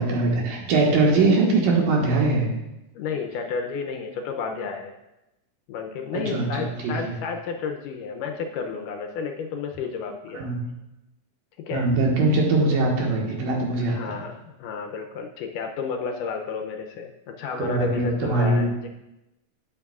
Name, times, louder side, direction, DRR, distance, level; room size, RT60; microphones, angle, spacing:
voice 1, 0.0-2.5 6.1-7.1 10.3-10.7 11.7-14.2 17.6-18.7, right 3 dB, 75° right, -2 dB, 3.1 m, -22 dB
voice 2, 3.0-4.9 5.7-10.5 11.6-11.9 13.9-14.3 14.6-18.9, left 5 dB, 80° left, 4 dB, 2.0 m, -31 dB
11.0 x 8.5 x 2.4 m, 0.95 s
omnidirectional pair, 4.0 m